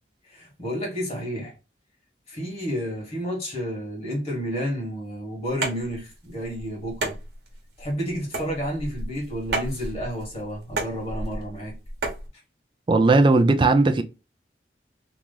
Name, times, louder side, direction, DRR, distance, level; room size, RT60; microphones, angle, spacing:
voice 1, 0.2-1.5 2.3-7.2 7.8-11.7, equal, 35° left, 1.5 m, -31 dB
sound 1, 5.5-12.3, right 2 dB, 65° right, 1.1 m, -33 dB
voice 2, 12.9-14.0, right 3 dB, 25° right, 0.3 m, -17 dB
3.0 x 2.4 x 3.7 m
head